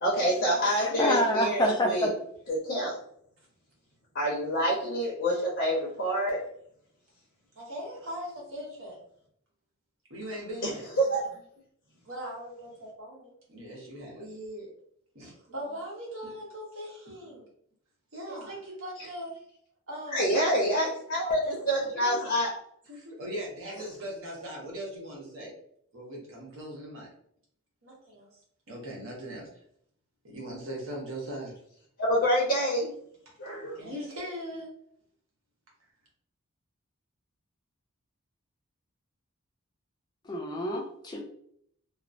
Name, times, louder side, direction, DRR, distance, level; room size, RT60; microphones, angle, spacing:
voice 1, 0.0-2.1 2.5-2.9 4.1-6.4 10.6-10.7 11.0-11.4 20.1-22.5 32.0-32.9 33.4-33.8, equal, 60° left, -4 dB, 0.7 m, -27 dB
voice 2, 0.8-2.1 40.3-41.3, equal, 20° left, 1 dB, 0.4 m, -27 dB
voice 3, 7.6-9.0 10.1-10.8 12.0-14.7 15.1-17.5 18.1-19.3 19.9-20.9 21.2-22.4 22.9-25.5 25.9-27.1 27.8-28.3 28.7-29.5 30.2-31.5 33.8-34.7, equal, 75° right, -3 dB, 1.0 m, -40 dB
3.0 x 2.0 x 2.5 m, 0.66 s
head